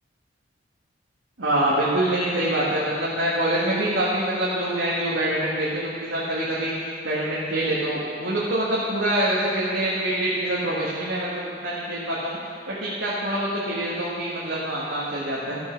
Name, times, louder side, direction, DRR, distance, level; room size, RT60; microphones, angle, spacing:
voice 1, 1.4-12.4 12.7-15.6, right 1 dB, 85° right, -7 dB, 1.8 m, -25 dB
13.5 x 5.6 x 6.5 m, 2.3 s
head